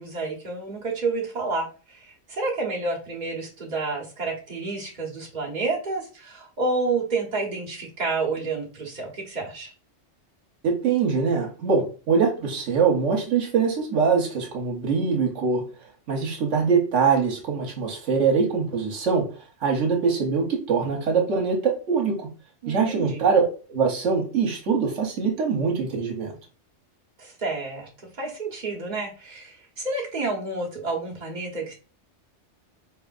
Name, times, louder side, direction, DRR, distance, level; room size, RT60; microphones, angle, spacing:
voice 1, 0.0-9.7 22.6-23.2 27.2-27.9 28.2-31.7, right 3 dB, 40° right, -2 dB, 1.2 m, -29 dB
voice 2, 10.6-15.6 16.1-19.3 19.6-22.3 22.7-26.3, right 5 dB, 80° right, 2 dB, 1.2 m, -23 dB
4.2 x 3.3 x 2.5 m, 0.35 s
omnidirectional pair, 1.2 m